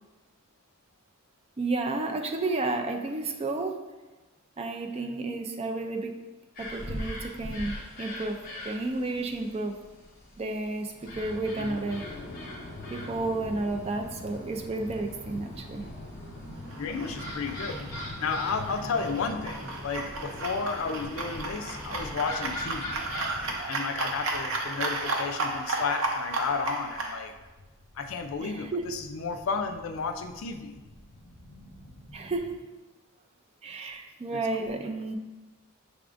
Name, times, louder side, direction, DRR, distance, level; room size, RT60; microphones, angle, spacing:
voice 1, 1.6-3.8 4.6-6.1 6.6-8.4 8.6-9.7 10.4-12.0 12.9-15.8 28.4-28.8 32.1-32.5 33.6-35.2, right 2 dB, 30° right, 4 dB, 0.4 m, -31 dB
sound 1, 6.6-23.6, left 1 dB, 45° left, 1.0 m, -40 dB
sound 2, 13.0-32.6, equal, 5° right, 1.5 m, -51 dB
sound 3, 16.7-27.1, right 2 dB, 75° right, 0.6 m, -34 dB
voice 2, 16.8-17.9 18.2-23.1 23.7-27.3 27.9-30.8 34.3-34.8, left 5 dB, 70° left, 6 dB, 0.4 m, -33 dB
6.0 x 3.5 x 2.5 m, 1.1 s
head